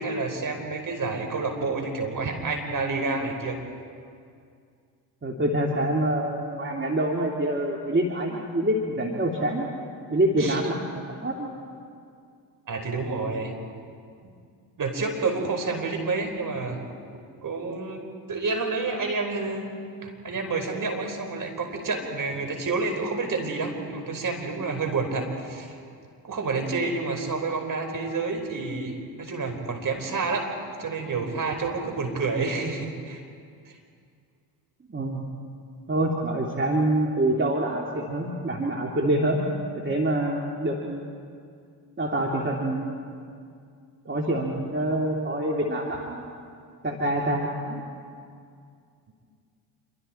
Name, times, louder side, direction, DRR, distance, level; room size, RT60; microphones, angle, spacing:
voice 1, 0.0-3.6 10.4-10.6 12.7-13.5 14.2-14.3 14.8-16.8 17.4-19.7 20.0-25.8 26.3-30.5 30.8-33.2, right 3 dB, 45° right, 3 dB, 4.9 m, -29 dB
voice 2, 5.2-9.7 10.1-11.5 34.9-35.2 35.9-39.4 39.8-41.0 42.0-43.0 44.0-46.2 46.8-47.8, right 1 dB, 25° right, -1 dB, 2.8 m, -26 dB
27.5 x 24.0 x 4.5 m, 2.3 s
hypercardioid pair, 55°, 47 cm